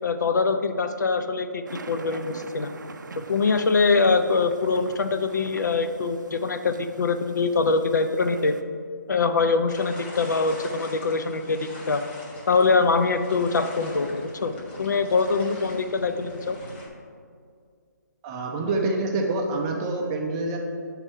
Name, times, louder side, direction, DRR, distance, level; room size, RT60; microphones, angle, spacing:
voice 1, 0.0-2.7 3.3-8.5 9.1-12.0 12.5-14.5 14.8-16.6, left 4 dB, 70° left, 8 dB, 0.5 m, -23 dB
sound 1, 1.7-8.6, right 4 dB, 75° right, 0.4 m, -44 dB
sound 2, 9.7-16.9, left 1 dB, 35° left, 1.1 m, -42 dB
voice 2, 18.2-20.6, right 2 dB, 20° right, 1 dB, 0.5 m, -26 dB
7.2 x 3.6 x 4.3 m, 2.2 s
figure-of-eight pair, 150°, 10 cm